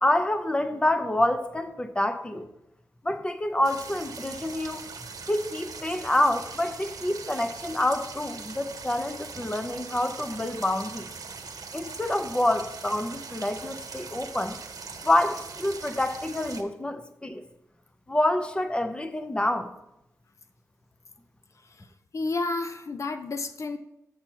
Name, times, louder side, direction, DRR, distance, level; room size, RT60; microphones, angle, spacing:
voice 1, 0.0-2.5 3.0-4.8 5.3-11.1 11.7-14.6 15.0-17.4 18.1-19.7, left 1 dB, 15° left, 9 dB, 0.7 m, -27 dB
sound 1, 3.6-16.6, right 5 dB, 75° right, 1.1 m, -41 dB
voice 2, 22.1-23.8, left 3 dB, 55° left, 9 dB, 0.5 m, -31 dB
7.5 x 6.8 x 4.5 m, 0.88 s
wide cardioid pair, 115°, 6 cm